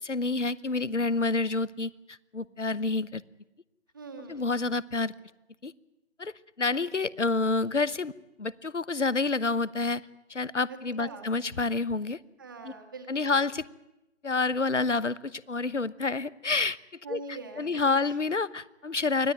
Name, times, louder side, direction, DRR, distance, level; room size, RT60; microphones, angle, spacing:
voice 1, 0.0-1.9 2.3-3.2 4.3-5.1 5.6-5.7 6.2-8.1 8.4-10.0 10.3-12.2 12.6-12.7 13.1-13.6 14.2-16.8 17.1-17.2 17.6-19.3, left 3 dB, 75° left, 20 dB, 1.1 m, -28 dB
voice 2, 3.9-4.5 4.9-5.0 10.7-11.3 12.4-13.4 17.0-18.2, right 3 dB, 15° right, 4 dB, 1.7 m, -43 dB
25.0 x 17.5 x 9.2 m, 0.91 s
figure-of-eight pair, 160°, 36 cm